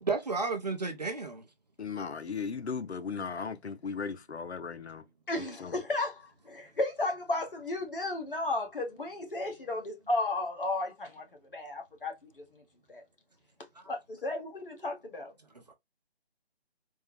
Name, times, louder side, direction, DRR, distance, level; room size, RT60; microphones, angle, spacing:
voice 1, 0.0-1.5 2.5-2.6 3.2-3.3 15.7-15.8, right 4 dB, 40° right, 0.6 m, -32 dB
voice 2, 1.8-5.0 5.6-5.7, left 5 dB, 80° left, 0.5 m, -36 dB
voice 3, 5.3-11.2 11.5-12.4 12.9-13.0 13.9-15.3, left 2 dB, 55° left, 1.1 m, -34 dB
3.5 x 2.1 x 3.1 m
figure-of-eight pair, 150°, 33 cm